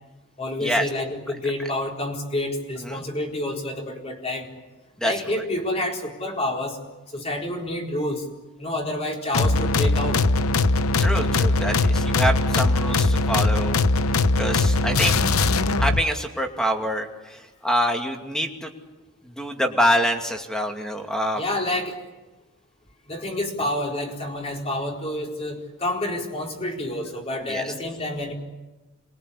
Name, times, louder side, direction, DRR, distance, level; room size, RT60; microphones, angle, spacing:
voice 1, 0.4-4.5 5.0-6.8 7.1-8.2 8.6-10.2 21.4-22.0 23.1-28.3, left 1 dB, 30° left, 0 dB, 4.4 m, -28 dB
voice 2, 5.0-5.4 11.0-13.8 14.4-15.2 15.8-18.7 19.2-21.4 27.4-27.7, equal, 5° left, 3 dB, 2.6 m, -26 dB
sound 1, 9.3-16.0, left 3 dB, 75° left, 0.9 m, -20 dB
27.5 x 22.5 x 8.5 m, 1.1 s
head